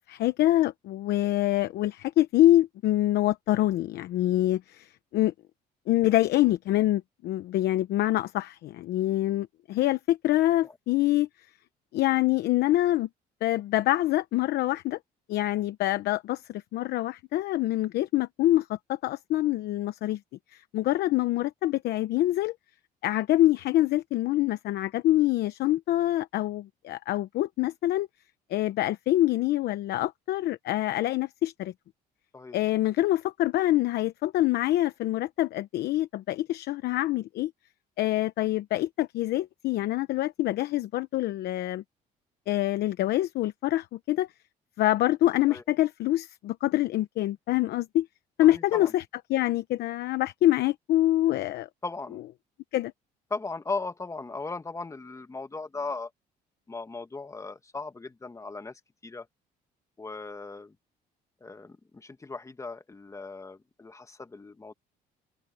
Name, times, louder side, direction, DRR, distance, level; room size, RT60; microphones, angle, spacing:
voice 1, 0.1-5.3 5.9-11.3 11.9-13.1 13.4-15.0 15.3-20.2 20.5-22.5 23.0-28.1 28.5-31.7 32.5-37.5 38.0-41.8 42.5-44.3 44.8-48.1 48.4-49.0 49.3-51.7 52.7-52.9, left 15 dB, 75° left, 0.9 m, -25 dB
voice 2, 48.4-48.9 51.8-52.2 53.3-56.1 56.7-59.3 60.0-60.7 61.4-64.7, left 3 dB, 20° left, 1.5 m, -37 dB
open air
cardioid pair, 110°, 17 cm